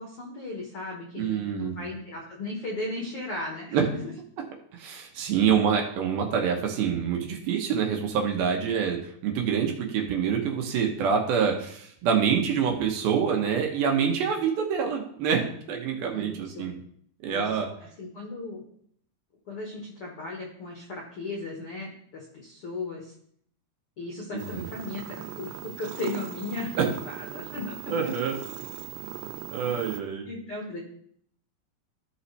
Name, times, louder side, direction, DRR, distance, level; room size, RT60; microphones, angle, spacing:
voice 1, 0.0-4.1 16.1-16.7 17.3-17.4 18.0-18.6 19.5-23.1 24.0-28.1 29.9-30.8, left 2 dB, 80° left, -1 dB, 1.2 m, -36 dB
voice 2, 1.2-1.8 3.7-3.9 4.7-16.7 17.2-17.7 24.3-24.7 26.8-26.9 27.9-28.4 29.5-30.3, right 7 dB, 70° right, 2 dB, 2.6 m, -26 dB
sound 1, 24.4-30.0, right 13 dB, 90° right, 2.7 m, -39 dB
14.0 x 5.5 x 3.3 m, 0.66 s
omnidirectional pair, 4.8 m